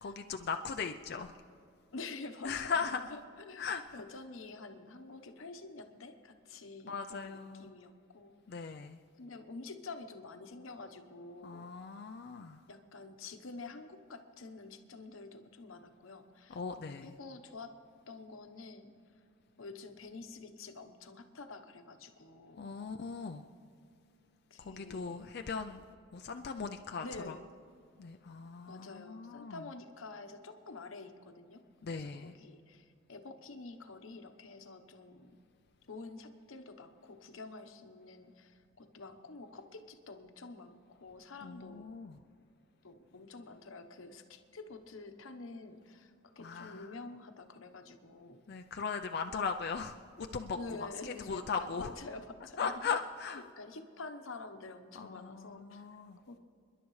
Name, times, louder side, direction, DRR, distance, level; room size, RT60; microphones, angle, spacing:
voice 1, 0.0-1.4 2.4-3.1 3.6-3.8 6.8-7.7 8.5-9.0 11.4-12.6 16.5-17.1 22.6-23.4 24.6-25.8 26.1-27.3 28.0-29.6 31.8-32.3 41.4-42.2 46.4-46.9 48.5-51.9 52.6-53.4 55.0-56.2, left 5 dB, 50° left, 5 dB, 0.4 m, -38 dB
voice 2, 1.9-3.6 3.9-8.6 9.2-11.7 12.7-16.6 17.0-17.7 18.1-18.9 19.6-22.7 24.5-25.3 27.0-27.5 28.6-35.4 35.9-41.9 42.8-48.4 50.5-52.7 53.6-55.9 56.3-56.4, left 3 dB, 80° left, 7 dB, 1.0 m, -48 dB
29.5 x 11.0 x 3.2 m, 2.4 s
head